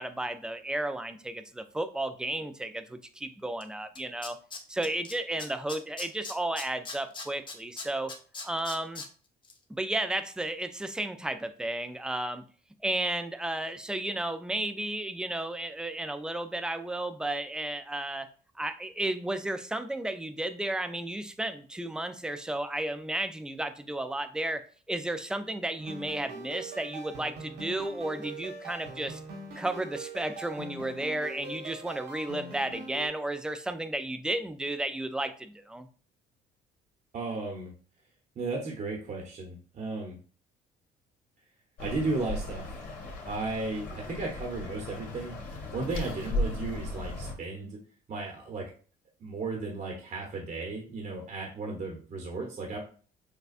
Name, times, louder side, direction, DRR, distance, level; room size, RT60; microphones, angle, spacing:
voice 1, 0.0-4.4 4.7-8.1 8.4-9.0 9.7-12.4 12.8-18.3 18.6-24.6 24.9-29.2 29.6-35.9, right 1 dB, 5° right, 9 dB, 0.4 m, -33 dB
Tools, 3.6-3.7 4.0-5.1 5.4-9.1 9.4-9.5, left 4 dB, 30° left, 0.8 m, -39 dB
sound 1, 25.8-33.1, right 2 dB, 80° right, 1.5 m, -42 dB
voice 2, 37.1-37.7 38.4-40.2 41.8-42.7 43.2-47.8 48.1-48.7 49.2-52.8, right 3 dB, 50° right, 0 dB, 1.0 m, -35 dB
sound 2, 41.8-47.3, left 1 dB, 55° left, 2.1 m, -36 dB
6.6 x 2.2 x 2.5 m, 0.40 s
cardioid pair, 110°, 17 cm